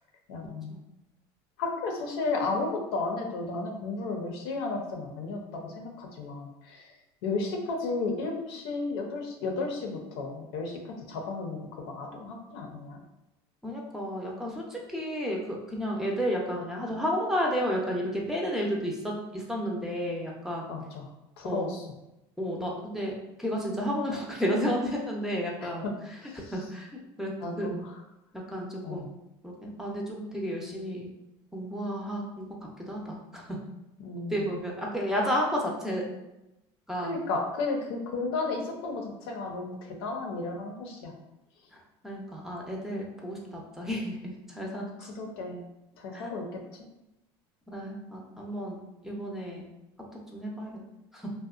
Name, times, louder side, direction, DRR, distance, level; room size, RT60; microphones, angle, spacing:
voice 1, 0.3-0.7 1.6-6.8 7.2-11.6 11.8-13.0 20.7-21.0 21.4-21.8 25.6-25.9 27.4-27.9 28.8-29.0 34.0-34.4 37.0-39.7 40.0-41.1 45.1-45.6 46.0-46.6, left 3 dB, 85° left, 2 dB, 0.6 m, -33 dB
voice 2, 13.6-20.7 21.4-21.7 22.4-26.9 27.2-27.7 28.3-29.0 29.4-31.1 31.5-32.5 32.9-33.4 34.3-36.0 36.9-37.2 42.0-44.2 44.5-44.9 46.1-46.3 47.7-48.8 49.0-49.6 50.3-50.8 51.1-51.3, equal, 5° right, -2 dB, 0.5 m, -32 dB
2.7 x 2.1 x 2.4 m, 0.91 s
supercardioid pair, 105°, 13 cm